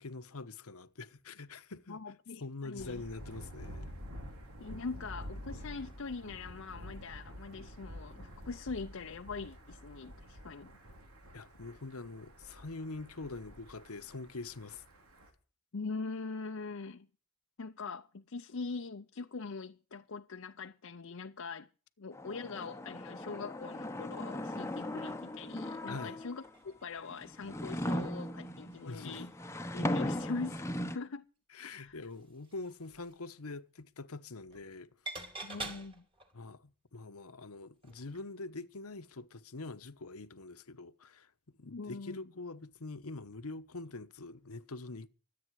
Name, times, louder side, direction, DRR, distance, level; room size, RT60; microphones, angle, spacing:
voice 1, 0.0-2.0 2.4-3.9 11.3-14.8 25.9-26.2 28.9-29.2 31.5-34.9 35.2-35.3 36.3-41.3 41.6-45.1, left 3 dB, 85° left, 1.1 m, -44 dB
voice 2, 1.9-3.0 4.6-10.7 15.7-17.1 17.6-21.7 22.0-29.3 29.7-31.3 31.6-32.0 35.4-36.0 41.7-42.3, left 4 dB, 65° left, 0.7 m, -42 dB
Thunder, 2.8-15.3, equal, 80° right, 3.6 m, -49 dB
sound 1, 22.1-26.5 27.1-31.0, left 1 dB, 10° left, 0.9 m, -38 dB
sound 2, 26.1-28.3 28.7-28.9 29.3-30.3 30.7-30.8 31.9-33.3 34.5-34.7 35.1-36.4 37.8-38.3 38.6-38.7, right 2 dB, 25° right, 2.3 m, -48 dB
24.0 x 8.7 x 4.8 m
head